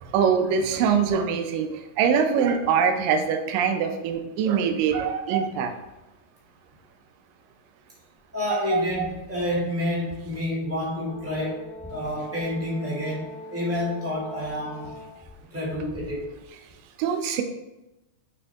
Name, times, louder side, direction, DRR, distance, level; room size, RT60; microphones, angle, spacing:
voice 1, 0.0-5.7 8.5-9.1 17.0-17.4, right 7 dB, 85° right, 7 dB, 2.3 m, -23 dB
voice 2, 8.3-13.2 13.5-14.9 15.5-16.3, left 1 dB, 5° right, -7 dB, 1.4 m, -29 dB
Brass instrument, 11.0-15.2, left 1 dB, 65° left, 1.0 m, -42 dB
6.2 x 5.5 x 3.5 m, 0.97 s
omnidirectional pair, 3.8 m